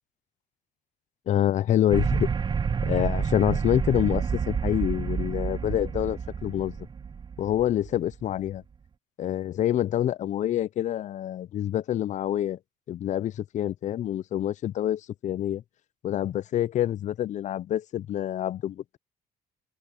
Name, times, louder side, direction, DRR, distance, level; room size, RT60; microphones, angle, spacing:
voice 1, 1.3-2.3 2.8-6.7 7.4-8.6 9.2-12.6 12.9-15.6 16.0-19.0, left 11 dB, 45° left, 0.4 m, -27 dB
sound 1, 1.9-8.4, right 6 dB, 25° right, 0.6 m, -29 dB
open air
cardioid pair, 110°, 17 cm